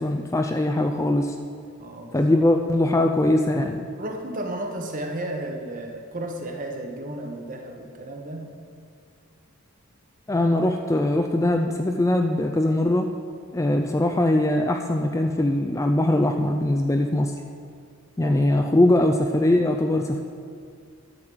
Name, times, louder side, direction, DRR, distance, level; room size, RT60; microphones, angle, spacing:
voice 1, 0.0-1.3 2.1-3.9 10.3-13.1 13.5-17.3 18.2-20.2, left 1 dB, 15° left, 4 dB, 0.3 m, -21 dB
voice 2, 1.8-2.3 4.0-8.6 18.2-18.4, right 1 dB, 35° right, 3 dB, 1.0 m, -33 dB
11.0 x 4.8 x 7.7 m, 2.2 s
head